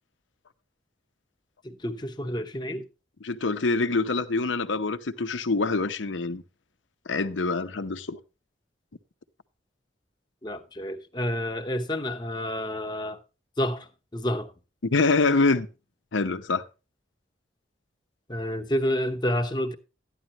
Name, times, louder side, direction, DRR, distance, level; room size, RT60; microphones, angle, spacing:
voice 1, 1.6-2.9 10.4-13.2 13.6-14.5 18.3-19.7, equal, 25° left, 1.0 m, -29 dB
voice 2, 3.2-6.4 7.1-8.2 14.8-15.7 16.1-16.6, left 3 dB, 85° left, 0.8 m, -25 dB
12.5 x 10.0 x 3.0 m
head